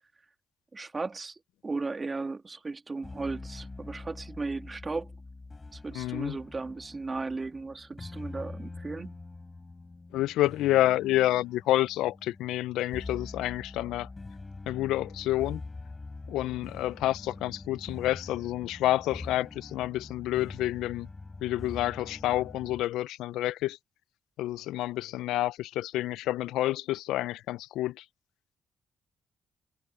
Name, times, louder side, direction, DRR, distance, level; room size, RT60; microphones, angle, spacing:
voice 1, 0.7-5.1 5.7-9.2, right 3 dB, 25° right, 2.3 m, -36 dB
sound 1, 3.0-22.8, left 3 dB, 20° left, 7.3 m, -44 dB
voice 2, 5.9-6.4 10.1-14.1 14.7-15.6 16.3-21.1 21.4-23.8 24.4-28.0, left 15 dB, 90° left, 0.3 m, -29 dB
cardioid pair, 90°, 0 cm